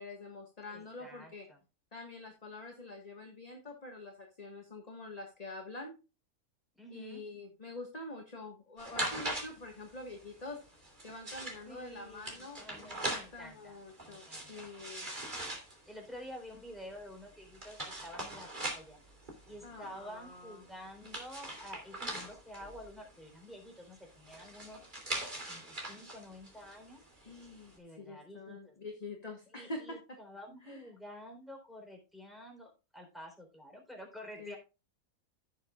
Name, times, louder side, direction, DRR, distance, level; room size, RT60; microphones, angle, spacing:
voice 1, 0.0-1.5 1.9-5.9 6.9-10.6 11.0-15.1 19.6-20.6 27.2-30.0 30.7-30.8 34.4-34.6, left 2 dB, 25° left, 2 dB, 1.6 m, -46 dB
voice 2, 0.7-1.6 6.7-7.2 11.7-14.6 15.9-19.0 19.5-24.8 25.5-25.6 25.9-27.0 27.7-28.8 29.5-34.6, equal, ahead, 1 dB, 3.8 m, -50 dB
sound 1, 8.8-27.7, right 1 dB, 30° right, 3.1 m, -43 dB
16.5 x 6.9 x 2.4 m, 0.30 s
omnidirectional pair, 1.5 m